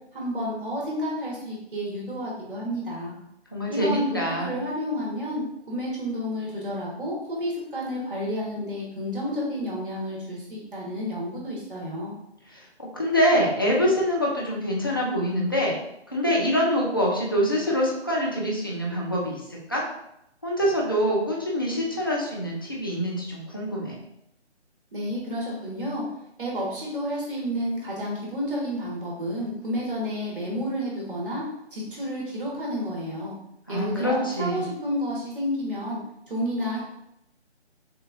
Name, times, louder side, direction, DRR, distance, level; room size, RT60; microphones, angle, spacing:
voice 1, 0.1-3.1 3.7-12.1 24.9-26.0 26.4-31.4 31.7-33.4 33.7-36.0 36.3-36.8, equal, 50° right, -4 dB, 1.5 m, -30 dB
voice 2, 3.5-4.6 12.5-15.8 16.1-19.9 20.4-24.0 33.7-34.7, equal, 20° left, -4 dB, 0.4 m, -25 dB
6.5 x 2.3 x 2.5 m, 0.79 s
figure-of-eight pair, 150°, 34 cm